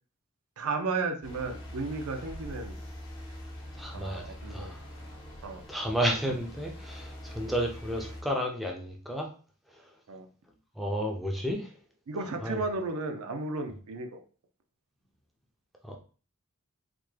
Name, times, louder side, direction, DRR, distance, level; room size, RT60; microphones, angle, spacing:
voice 1, 0.6-2.8 3.9-4.7 5.4-5.6 10.1-10.3 12.1-14.2, right 3 dB, 80° right, 6 dB, 0.5 m, -34 dB
sound 1, 1.2-8.2, left 1 dB, 60° left, 0.8 m, -43 dB
voice 2, 3.8-4.8 5.7-9.3 10.8-11.7 12.4-12.6 15.8-16.0, equal, ahead, 1 dB, 0.4 m, -32 dB
3.3 x 2.1 x 3.2 m, 0.38 s
head